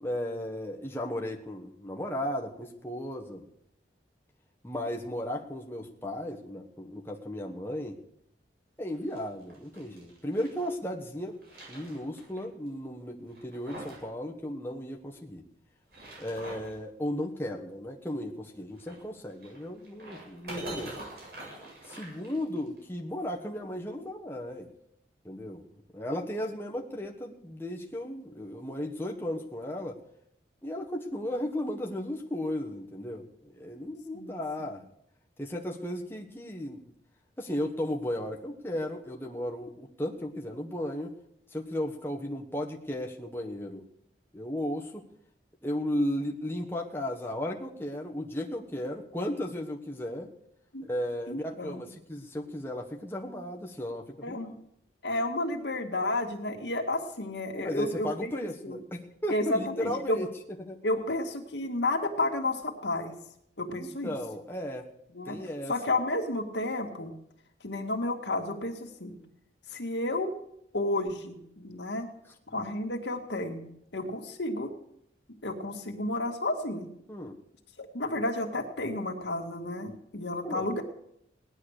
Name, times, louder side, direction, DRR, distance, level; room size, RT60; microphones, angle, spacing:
voice 1, 0.0-3.4 4.6-8.0 8.8-11.4 11.7-15.4 16.2-20.9 21.8-24.7 25.2-25.6 25.9-30.0 30.6-34.8 35.4-36.8 37.4-41.1 41.5-43.8 44.3-45.1 45.6-50.3 50.9-54.4 57.5-60.3 60.6-60.8 63.7-64.9 65.2-65.7 77.1-77.4 80.4-80.6, left 1 dB, 10° left, 0 dB, 1.4 m, -35 dB
sound 1, 8.9-10.7 11.1-12.4 12.7-12.8 13.3-14.1 14.3-14.4 15.7-16.8 18.7-22.8, right 2 dB, 55° right, 7.9 m, -45 dB
voice 2, 51.3-51.8 54.2-54.5 55.0-58.8 59.3-60.2 60.8-63.1 63.6-64.1 65.1-65.4 65.7-67.1 67.6-69.2 69.7-70.3 70.7-72.1 72.5-73.7 73.9-74.8 75.4-76.9 77.8-80.8, left 2 dB, 80° left, 3 dB, 2.1 m, -31 dB
18.0 x 11.0 x 6.6 m, 0.74 s
head